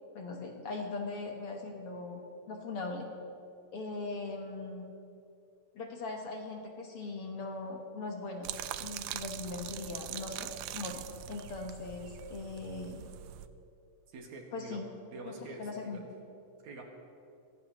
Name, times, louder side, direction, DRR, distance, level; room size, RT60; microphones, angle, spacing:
voice 1, 0.2-2.2 2.5-3.1 3.7-4.8 5.8-8.5 8.8-13.0 14.5-14.9 15.3-16.0, left 3 dB, 55° left, 1 dB, 1.8 m, -40 dB
sound 1, 8.4-13.5, right 13 dB, 80° right, 1.9 m, -42 dB
voice 2, 14.1-14.8 15.1-16.0 16.6-16.8, right 3 dB, 65° right, 1 dB, 2.9 m, -46 dB
23.0 x 16.5 x 3.0 m, 2.5 s
omnidirectional pair, 3.7 m